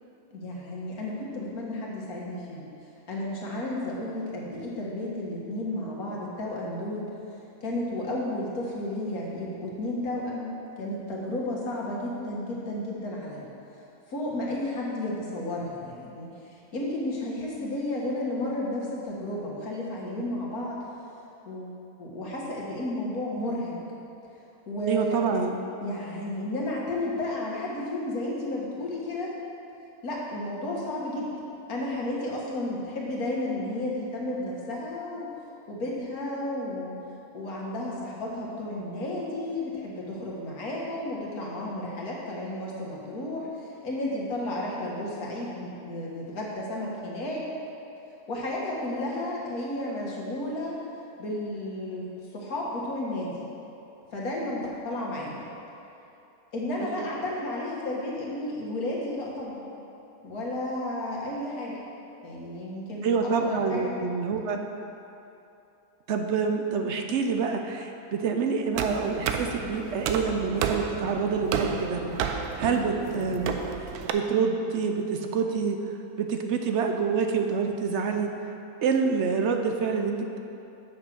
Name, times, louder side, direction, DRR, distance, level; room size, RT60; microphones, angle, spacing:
voice 1, 0.3-2.7 3.1-7.1 7.6-13.5 14.1-20.9 21.5-23.8 24.7-25.2 25.8-29.3 30.0-31.3 31.7-35.3 35.7-37.0 37.3-47.5 48.3-50.8 51.2-52.1 52.3-53.4 54.1-55.5 56.5-59.7 60.2-61.8 62.2-63.9, left 1 dB, 75° left, -4 dB, 2.0 m, -32 dB
voice 2, 24.9-25.6 56.9-57.1 63.0-64.6 66.1-72.0 72.6-75.8 76.2-78.3 78.8-80.4, right 5 dB, 60° right, 4 dB, 0.8 m, -27 dB
sound 1, 68.8-74.1, right 6 dB, 85° right, 1.1 m, -31 dB
7.7 x 6.3 x 6.0 m, 2.8 s
omnidirectional pair, 1.6 m